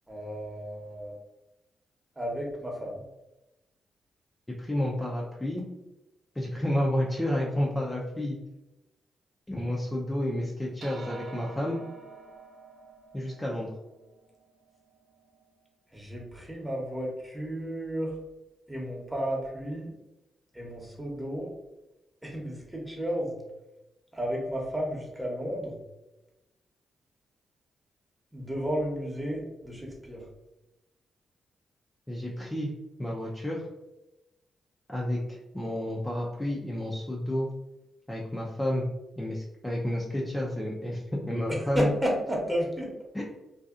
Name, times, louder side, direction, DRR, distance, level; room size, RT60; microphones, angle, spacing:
voice 1, 0.1-1.2 2.2-3.0 15.9-18.2 18.7-19.9 20.5-21.5 22.2-23.4 24.1-25.8 28.3-30.2 41.5-42.9, equal, 10° right, -2 dB, 0.9 m, -32 dB
voice 2, 4.6-5.7 6.4-8.4 9.5-11.8 13.1-13.7 32.1-32.7 33.0-33.7 34.9-37.5 38.1-38.8 39.2-41.9 43.1-43.2, left 1 dB, 15° left, -4 dB, 0.5 m, -30 dB
sound 1, 10.8-15.5, right 4 dB, 60° right, 0.5 m, -48 dB
2.7 x 2.3 x 2.4 m, 0.97 s
cardioid pair, 60°, 0 cm